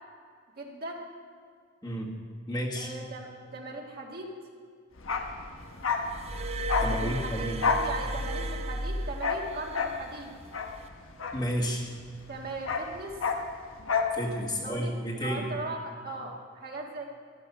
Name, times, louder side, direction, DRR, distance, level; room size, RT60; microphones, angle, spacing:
voice 1, 0.6-1.1 2.8-4.3 6.8-10.3 12.3-13.2 14.6-17.0, right 2 dB, 50° right, 0 dB, 1.9 m, -39 dB
voice 2, 1.8-2.1 2.5-2.9 6.8-7.6 11.3-11.8 14.1-15.5, equal, 20° left, -2 dB, 1.7 m, -31 dB
Bark, 5.0-12.0 12.3-14.2 14.5-14.6, left 5 dB, 90° left, 1.2 m, -31 dB
Glass, 6.1-9.7 10.7-10.9, right 1 dB, 30° right, 0.6 m, -34 dB
13.5 x 11.5 x 5.6 m, 2.2 s
head